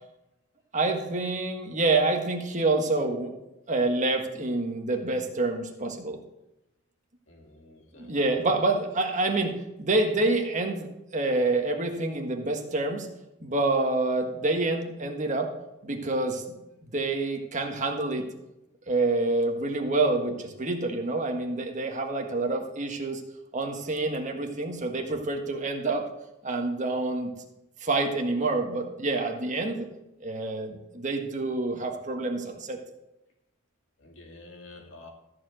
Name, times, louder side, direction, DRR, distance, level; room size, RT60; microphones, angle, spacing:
voice 1, 0.7-3.3 3.7-6.2 8.0-10.9 11.1-13.1 13.4-15.5 15.8-16.4 16.9-18.3 18.9-23.2 23.5-26.1 26.4-27.3 27.8-29.9 30.2-32.8, right 2 dB, 35° right, 3 dB, 1.5 m, -27 dB
voice 2, 7.3-8.6 34.0-35.1, left 2 dB, 65° left, 2 dB, 2.3 m, -48 dB
14.0 x 4.9 x 7.7 m, 0.91 s
head